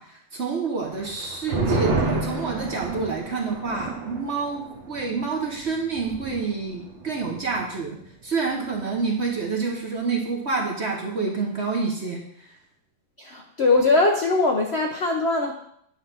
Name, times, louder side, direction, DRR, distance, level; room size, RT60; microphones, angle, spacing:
voice 1, 0.0-8.0 8.2-12.5, right 4 dB, 45° right, -1 dB, 1.0 m, -28 dB
sound 1, 0.9-7.9 8.1-8.2 8.6-9.1, right 3 dB, 70° right, 1.8 m, -30 dB
voice 2, 13.2-15.5, left 3 dB, 70° left, 2 dB, 0.6 m, -21 dB
9.2 x 3.3 x 5.9 m, 0.71 s
omnidirectional pair, 2.1 m